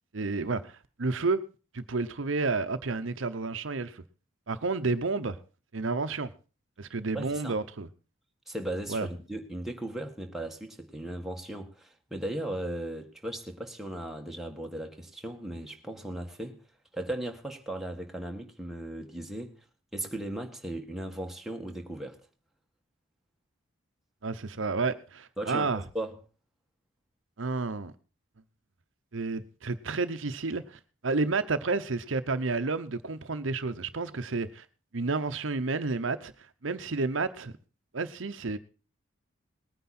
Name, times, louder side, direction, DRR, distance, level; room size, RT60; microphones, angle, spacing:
voice 1, 0.1-1.4 1.7-4.0 4.5-5.4 5.7-6.3 6.8-7.9 8.9-9.1 24.2-25.8 27.4-27.9 29.1-34.6 34.9-37.5 37.9-38.6, right 3 dB, 70° right, 0.8 m, -31 dB
voice 2, 7.1-7.6 8.5-16.6 16.9-19.6 19.9-22.2 25.4-26.2, right 1 dB, ahead, 1.6 m, -37 dB
19.5 x 9.5 x 4.2 m
head